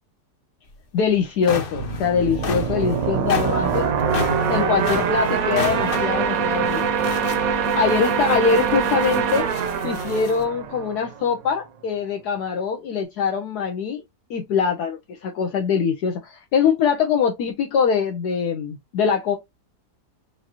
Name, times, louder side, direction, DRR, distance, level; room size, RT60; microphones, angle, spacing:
sound 1, 0.7-0.8 1.2-10.4, left 5 dB, 50° left, 0.6 m, -33 dB
voice 1, 0.9-3.9 4.5-6.8 7.7-9.5 9.8-14.0 14.3-19.4, left 6 dB, 70° left, 1.3 m, -23 dB
sound 2, 1.7-11.3, right 6 dB, 65° right, 1.1 m, -23 dB
5.0 x 2.6 x 2.9 m
omnidirectional pair, 1.8 m